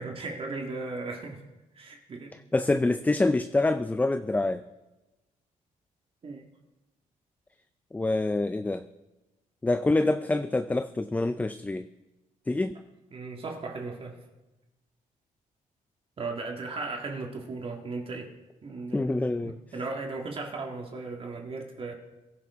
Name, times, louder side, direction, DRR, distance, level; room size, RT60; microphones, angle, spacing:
voice 1, 0.0-1.4 1.7-2.4 6.2-6.4 13.1-14.2 16.2-18.3 18.6-21.9, right 3 dB, 40° right, 1 dB, 1.8 m, -36 dB
voice 2, 2.5-4.6 7.9-8.8 9.6-11.9 12.5-12.8 18.9-19.6, left 2 dB, 10° left, 11 dB, 0.4 m, -26 dB
22.5 x 10.5 x 3.6 m, 1.1 s
cardioid pair, 105°, 14 cm